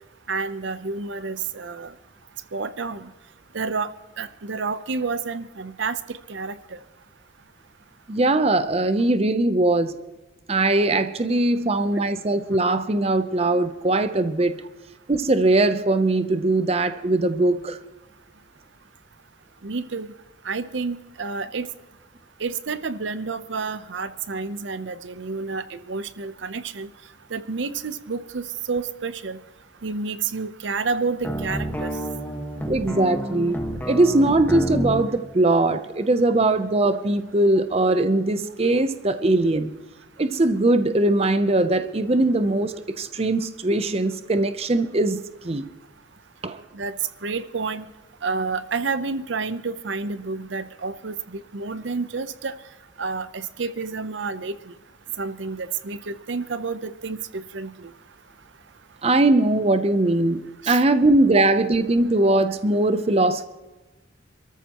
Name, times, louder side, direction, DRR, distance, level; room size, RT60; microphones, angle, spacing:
voice 1, 0.3-1.9 2.5-3.1 3.5-3.9 4.2-6.0 6.3-6.5 19.6-20.1 20.4-21.7 22.4-26.9 27.3-29.4 29.8-31.9 46.7-46.9 47.2-47.8 48.2-52.5 53.0-54.5 55.2-57.9 60.6-60.8 61.4-61.5, right 4 dB, 75° right, 13 dB, 0.7 m, -29 dB
voice 2, 8.1-9.9 10.5-14.6 15.1-17.8 32.7-33.6 33.9-39.7 40.2-45.2 45.4-45.7 46.4-46.6 59.0-63.4, right 2 dB, 30° right, 10 dB, 0.6 m, -21 dB
sound 1, 31.2-35.1, equal, 10° left, 1.4 m, -29 dB
27.5 x 14.0 x 3.0 m, 1.1 s
head